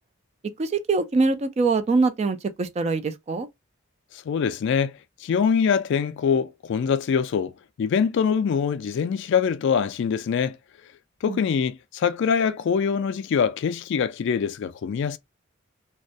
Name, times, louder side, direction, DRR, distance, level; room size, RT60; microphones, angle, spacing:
voice 1, 0.6-3.5 11.3-11.4, right 3 dB, 30° right, 0.3 m, -23 dB
voice 2, 4.3-4.9 5.2-7.5 7.8-10.6 11.2-15.2, left 6 dB, 60° left, 0.3 m, -24 dB
2.3 x 2.1 x 2.6 m
head